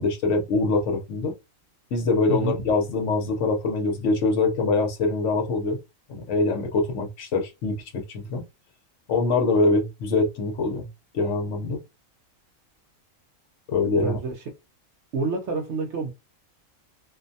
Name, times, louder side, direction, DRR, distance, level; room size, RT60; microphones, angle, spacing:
voice 1, 0.0-1.3 1.9-5.8 6.1-8.4 9.1-10.9 11.1-11.8 13.7-14.2, left 3 dB, 65° left, 0.9 m, -24 dB
voice 2, 2.3-2.6 13.9-14.4 15.1-16.1, right 4 dB, 65° right, 0.8 m, -28 dB
2.5 x 2.1 x 2.6 m
omnidirectional pair, 1.4 m